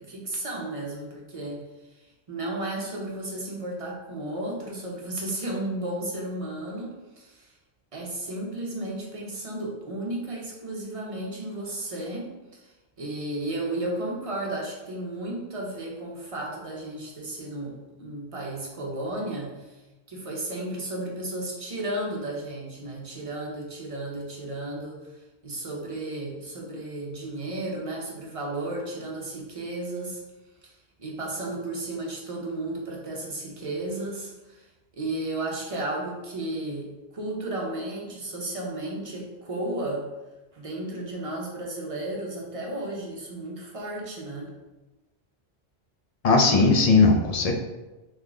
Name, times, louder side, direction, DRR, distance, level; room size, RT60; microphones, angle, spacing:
voice 1, 0.0-1.6 1.9-7.5 7.9-25.1 25.4-30.2 30.6-30.7 31.0-34.7 34.9-40.1 40.5-44.5, right 1 dB, 35° right, -2 dB, 0.9 m, -33 dB
voice 2, 46.2-47.5, left 3 dB, 50° left, 3 dB, 0.5 m, -18 dB
3.7 x 3.2 x 3.7 m, 1.1 s
omnidirectional pair, 1.1 m